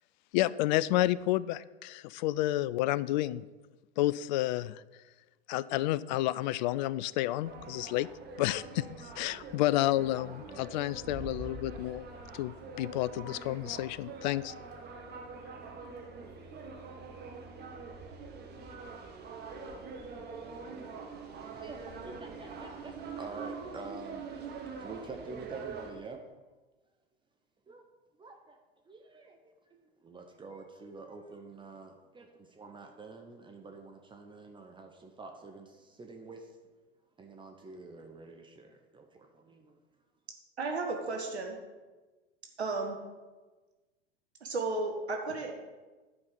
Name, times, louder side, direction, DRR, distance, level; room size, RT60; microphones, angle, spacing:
voice 1, 0.3-3.5 4.0-4.8 5.5-8.1 8.4-12.1 12.3-14.5, left 15 dB, 45° left, 19 dB, 0.4 m, -30 dB
sound 1, 7.4-25.9, right 4 dB, 30° right, 1.6 m, -44 dB
voice 2, 21.5-24.2 24.8-26.2 27.7-27.8 28.2-28.6 28.9-29.4 30.0-36.5 37.2-39.8, right 3 dB, 15° right, 3 dB, 0.8 m, -47 dB
voice 3, 40.6-41.6 42.6-43.0 44.4-45.5, right 3 dB, 80° right, 2 dB, 1.4 m, -33 dB
11.0 x 5.4 x 5.9 m, 1.2 s
figure-of-eight pair, 90°, 32 cm